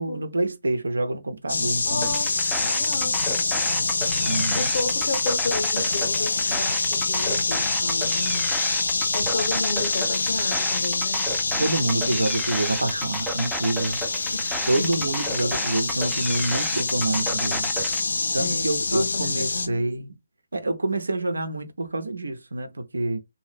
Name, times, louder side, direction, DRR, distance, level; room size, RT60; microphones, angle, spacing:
voice 1, 0.0-2.2 4.3-4.6 11.6-14.0 14.7-17.7 18.3-20.1 20.5-23.2, right 2 dB, 75° right, 0.5 m, -27 dB
sound 1, 1.5-19.7, left 3 dB, 65° left, 0.4 m, -26 dB
voice 2, 1.8-3.2 4.5-8.5 9.1-11.3 14.3-15.1 18.3-20.0, left 3 dB, 50° left, 1.0 m, -32 dB
sound 2, 2.0-18.0, right 1 dB, ahead, 0.4 m, -33 dB
2.6 x 2.1 x 3.3 m
figure-of-eight pair, 140°, 0 cm